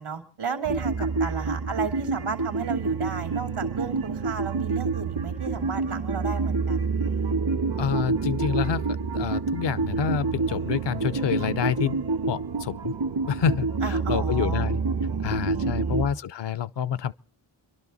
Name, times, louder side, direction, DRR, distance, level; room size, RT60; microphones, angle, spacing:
voice 1, 0.0-6.9 13.8-14.7 15.5-16.1, right 5 dB, 80° right, 2.2 m, -34 dB
sound 1, 0.6-16.1, right 4 dB, 65° right, 1.4 m, -27 dB
voice 2, 7.8-8.8 9.1-12.0 12.3-12.9 13.3-14.8 15.2-17.1, left 8 dB, 60° left, 0.6 m, -28 dB
29.0 x 11.5 x 4.0 m
cardioid pair, 45°, 49 cm